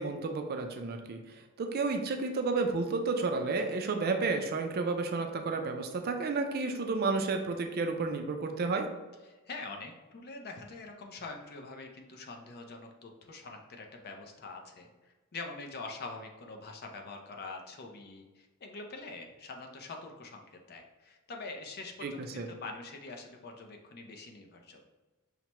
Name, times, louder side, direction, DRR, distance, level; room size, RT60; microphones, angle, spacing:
voice 1, 0.0-8.9 22.0-22.5, right 3 dB, 45° right, 5 dB, 0.4 m, -31 dB
voice 2, 9.3-24.9, left 3 dB, 45° left, 3 dB, 0.5 m, -45 dB
5.6 x 2.1 x 3.0 m, 1.2 s
head